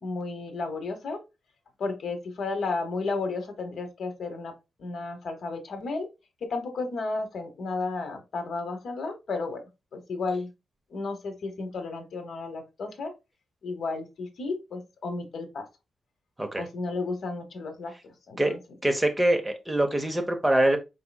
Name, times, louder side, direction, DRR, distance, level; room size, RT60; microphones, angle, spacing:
voice 1, 0.0-1.2 1.8-6.1 6.4-9.6 9.9-10.5 10.9-13.1 13.6-15.7 16.6-18.6, left 3 dB, 55° left, 1.0 m, -33 dB
voice 2, 18.8-20.8, right 1 dB, 10° right, 0.7 m, -24 dB
4.7 x 4.1 x 2.2 m
wide cardioid pair, 145°, 0 cm